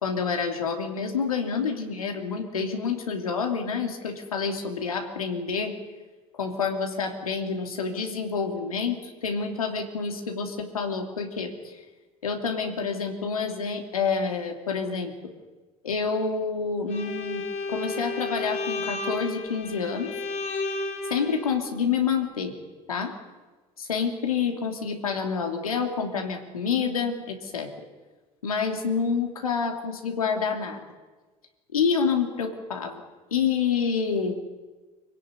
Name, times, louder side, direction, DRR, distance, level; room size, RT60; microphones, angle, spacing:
voice 1, 0.0-5.8 6.3-11.8 12.2-15.3 15.8-17.4 17.7-20.1 21.0-22.5 22.9-23.1 23.8-27.7 28.4-30.8 31.7-33.0 33.3-34.4, left 5 dB, 90° left, 3 dB, 3.0 m, -28 dB
Bowed string instrument, 16.9-21.6, left 3 dB, 45° left, 4.3 m, -32 dB
26.0 x 16.5 x 9.6 m, 1.3 s
hypercardioid pair, 60°, 18 cm